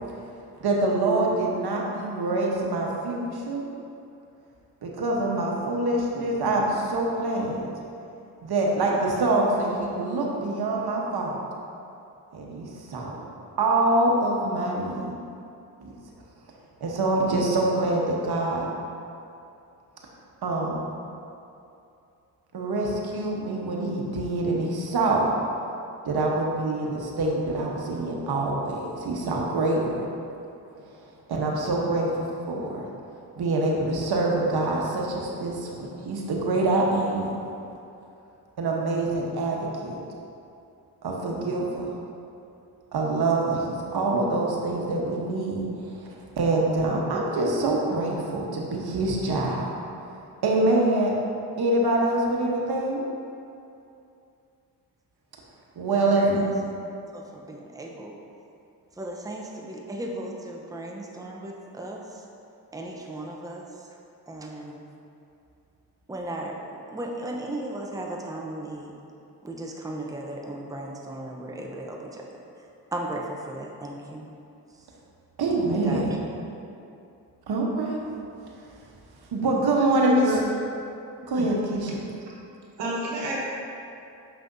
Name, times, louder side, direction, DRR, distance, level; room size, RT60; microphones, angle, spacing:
voice 1, 0.6-3.7 4.8-7.7 8.4-11.4 12.3-13.1 13.6-15.1 15.8-16.0 16.8-18.7 20.4-20.8 22.5-25.3 26.0-30.1 30.8-31.0 31.3-32.9 33.4-37.4 38.6-40.0 41.0-42.0 42.9-50.2 50.4-51.1 51.6-53.0 55.7-56.4 75.4-76.1 77.5-78.0 78.5-78.7 79.3-80.4 81.3-82.0, right 2 dB, 65° right, -2 dB, 1.1 m, -25 dB
voice 2, 57.1-58.2 59.0-62.0 62.7-63.7 64.3-64.8 66.1-68.9 69.4-72.3 72.9-74.3 75.7-76.0, right 1 dB, 10° right, -1 dB, 0.8 m, -36 dB
voice 3, 80.0-80.5 81.4-81.5 82.8-83.4, right 1 dB, 85° right, -4 dB, 1.2 m, -29 dB
6.9 x 5.6 x 2.7 m, 2.6 s
cardioid pair, 55°, 41 cm